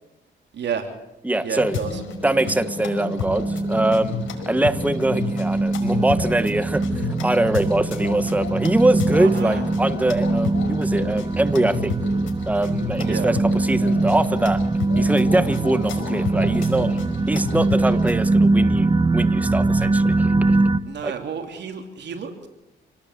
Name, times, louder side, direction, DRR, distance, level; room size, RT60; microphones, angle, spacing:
voice 1, 0.5-0.9 1.3-2.0 9.2-9.7 13.0-13.3 20.9-22.5, right 7 dB, 60° right, 5 dB, 3.3 m, -31 dB
voice 2, 1.2-1.8 2.2-4.2 4.5-11.9 12.4-14.6 15.0-17.0 17.3-20.3 21.0-21.1, right 1 dB, 5° right, 11 dB, 1.5 m, -23 dB
sound 1, 1.5-18.2, left 6 dB, 75° left, 5.3 m, -32 dB
sound 2, 2.0-20.8, right 2 dB, 25° right, 1.3 m, -22 dB
28.0 x 18.5 x 8.3 m, 0.92 s
cardioid pair, 90°, 20 cm